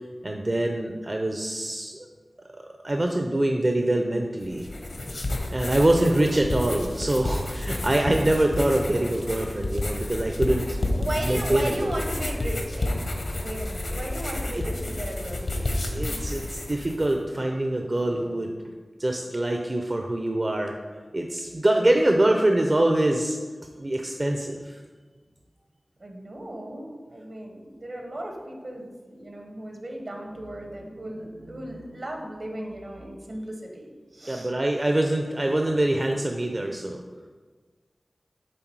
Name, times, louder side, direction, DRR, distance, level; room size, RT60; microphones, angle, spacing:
voice 1, 0.2-2.1 2.8-4.7 5.5-10.8 11.2-11.9 14.5-14.6 15.9-18.6 19.0-20.7 21.1-23.4 23.8-24.8 34.3-37.0, right 1 dB, 45° right, 3 dB, 0.6 m, -24 dB
sound 1, 4.4-17.1, left 1 dB, 80° left, 1.0 m, -30 dB
voice 2, 10.9-12.9 13.2-15.8 26.0-33.9 34.1-34.5, right 1 dB, 70° right, 1 dB, 1.3 m, -36 dB
7.7 x 3.7 x 4.7 m, 1.4 s
cardioid pair, 40°, 0 cm